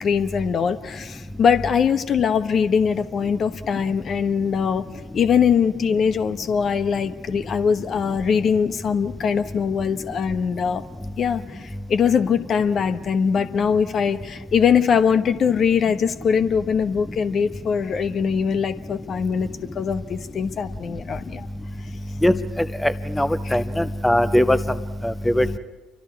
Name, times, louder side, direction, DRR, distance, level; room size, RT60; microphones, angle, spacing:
voice 1, 0.0-4.9 5.1-10.8 11.2-19.5 19.7-21.5 23.4-23.6, left 6 dB, 45° left, 10 dB, 1.1 m, -22 dB
voice 2, 22.8-24.6 25.0-25.6, left 1 dB, 10° left, 12 dB, 0.9 m, -20 dB
29.5 x 24.5 x 4.7 m, 1.3 s
figure-of-eight pair, 50°, 0 cm